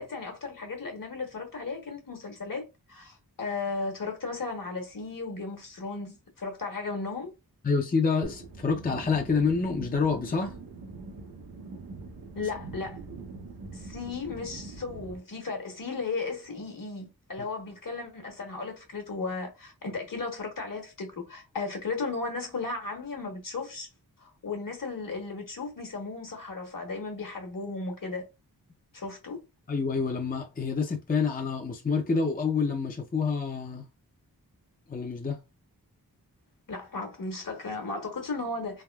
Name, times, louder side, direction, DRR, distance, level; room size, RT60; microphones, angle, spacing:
voice 1, 0.0-7.3 12.3-13.0 13.7-23.9 24.2-28.3 28.9-29.4 36.7-38.8, left 3 dB, 60° left, 1.2 m, -35 dB
voice 2, 7.6-10.6 29.7-33.9 34.9-35.4, left 5 dB, 25° left, 0.5 m, -27 dB
sound 1, 8.2-15.2, right 3 dB, 70° right, 0.8 m, -43 dB
3.5 x 2.3 x 2.3 m
wide cardioid pair, 65°, 37 cm